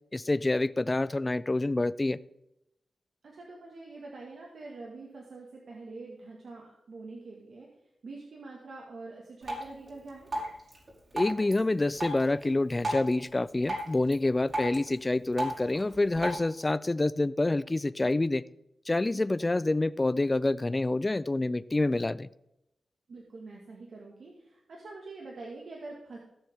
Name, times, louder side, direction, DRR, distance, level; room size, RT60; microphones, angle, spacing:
voice 1, 0.1-2.2 11.1-18.4 18.9-22.3, left 2 dB, 25° left, 17 dB, 0.4 m, -27 dB
voice 2, 3.2-7.7 8.0-10.3 19.4-19.5 23.1-26.2, right 3 dB, 70° right, -2 dB, 1.9 m, -45 dB
Drip, 9.4-16.4, right 1 dB, 45° right, 4.8 m, -37 dB
16.5 x 7.1 x 3.6 m, 0.85 s
cardioid pair, 85°, 0 cm